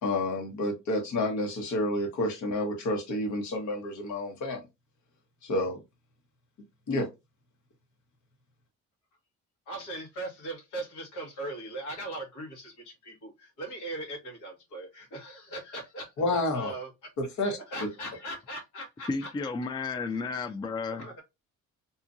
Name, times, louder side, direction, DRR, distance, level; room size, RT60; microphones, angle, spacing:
voice 1, 0.0-4.6 5.4-5.8 6.9-7.1 16.2-16.7 17.2-17.6, left 1 dB, 70° left, 1.1 m, -29 dB
voice 2, 9.7-16.9 17.4-19.3 19.8-20.2 20.9-21.2, right 1 dB, 85° left, 1.4 m, -40 dB
voice 3, 19.1-21.1, left 4 dB, 15° left, 0.3 m, -32 dB
2.8 x 2.4 x 2.5 m
cardioid pair, 90°, 30 cm